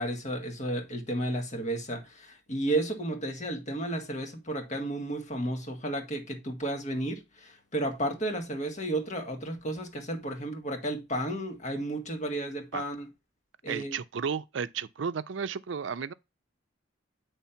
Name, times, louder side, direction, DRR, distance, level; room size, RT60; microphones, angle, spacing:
voice 1, 0.0-13.1 13.6-14.0, right 1 dB, 40° left, 1.6 m, -33 dB
voice 2, 13.7-16.1, right 6 dB, 75° right, 0.5 m, -33 dB
8.3 x 3.4 x 5.7 m
head